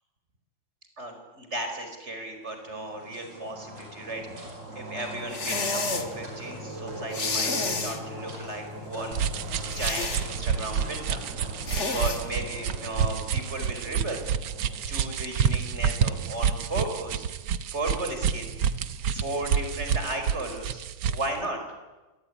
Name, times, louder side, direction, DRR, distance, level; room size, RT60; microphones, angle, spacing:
voice 1, 1.0-4.2 4.7-11.2 11.8-14.2 14.9-17.2 17.7-18.5 19.1-21.6, right 2 dB, 30° right, 5 dB, 5.1 m, -35 dB
sound 1, 2.4-15.7, equal, 65° right, 5.8 m, -41 dB
sound 2, 5.3-6.1 7.1-8.0 9.7-10.2 11.6-12.2, left 3 dB, 35° left, 2.2 m, -29 dB
sound 3, 9.1-21.3, right 7 dB, 85° right, 1.8 m, -29 dB
26.5 x 19.0 x 9.9 m, 1.1 s
omnidirectional pair, 2.2 m